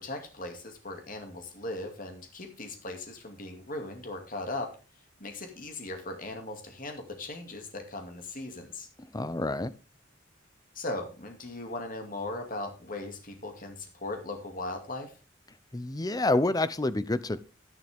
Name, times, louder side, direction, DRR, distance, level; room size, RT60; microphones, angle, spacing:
voice 1, 0.0-4.7 5.2-8.9 10.7-15.1, left 2 dB, 45° left, 2.4 m, -38 dB
voice 2, 9.0-9.7 15.7-17.4, left 2 dB, 20° left, 0.6 m, -28 dB
11.0 x 10.5 x 3.5 m
head